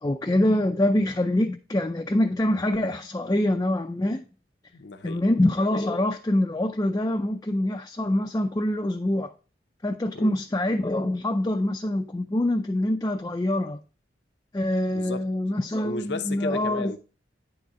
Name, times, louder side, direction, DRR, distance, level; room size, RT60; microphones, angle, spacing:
voice 1, 0.0-4.2 5.0-9.3 9.8-13.8 14.5-16.9, left 1 dB, 20° left, 0.4 m, -25 dB
voice 2, 4.7-5.2 10.1-10.4 14.9-15.3 15.8-17.0, left 3 dB, 70° left, 0.7 m, -34 dB
9.4 x 4.1 x 4.8 m
head